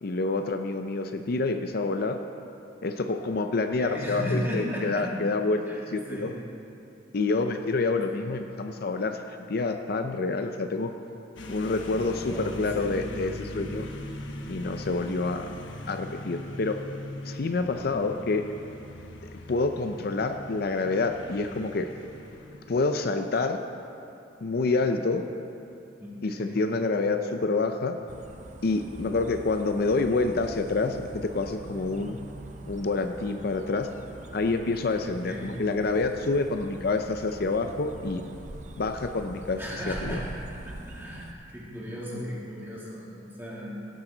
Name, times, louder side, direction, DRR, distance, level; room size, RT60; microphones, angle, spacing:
voice 1, 0.0-2.2 2.8-6.3 7.1-10.9 11.5-13.9 14.5-15.5 15.9-16.8 17.2-18.4 19.3-21.9 22.7-23.6 24.4-25.3 26.2-28.0 28.6-32.2 32.7-33.9 34.3-38.2 38.8-40.2, left 3 dB, 55° left, 6 dB, 0.5 m, -27 dB
voice 2, 3.5-5.1 5.6-5.8 6.1-6.3 8.1-8.3 12.2-13.0 26.0-26.6 35.2-35.5 39.6-40.2 40.6-44.0, equal, 10° right, -7 dB, 2.7 m, -36 dB
sound 1, 11.4-23.1, left 1 dB, 75° left, 1.1 m, -40 dB
sound 2, 28.1-41.3, right 1 dB, 40° right, 0.7 m, -43 dB
17.0 x 10.5 x 3.9 m, 2.7 s
head